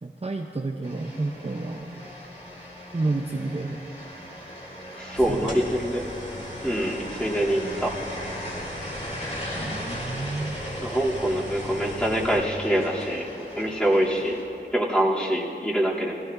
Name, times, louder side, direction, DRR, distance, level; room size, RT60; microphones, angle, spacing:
voice 1, 0.0-1.9 2.9-3.8 5.2-5.6 9.5-10.6, right 2 dB, 30° right, 2 dB, 0.7 m, -30 dB
sound 1, 0.8-14.4, equal, 35° left, 3.0 m, -38 dB
voice 2, 5.0-6.0 6.6-7.9 10.8-13.3 13.5-14.4 14.7-16.1, right 1 dB, 5° left, -6 dB, 2.7 m, -25 dB
sound 2, 5.1-12.4, left 1 dB, 70° left, 2.3 m, -40 dB
19.0 x 16.0 x 2.6 m, 2.7 s
wide cardioid pair, 40°, 19 cm